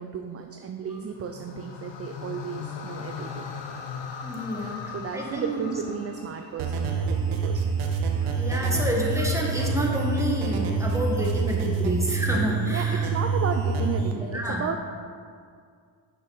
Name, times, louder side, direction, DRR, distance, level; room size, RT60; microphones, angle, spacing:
voice 1, 0.0-3.5 4.6-7.8 12.7-15.0, right 6 dB, 30° right, 5 dB, 0.4 m, -34 dB
sound 1, 1.1-7.4, left 6 dB, 60° left, 0.8 m, -39 dB
voice 2, 4.2-5.6 8.2-13.1 14.1-14.7, equal, 5° right, -2 dB, 1.5 m, -29 dB
sound 2, 6.6-14.1, right 4 dB, 80° right, 1.0 m, -26 dB
6.7 x 5.9 x 4.0 m, 2.1 s
supercardioid pair, 70°, 48 cm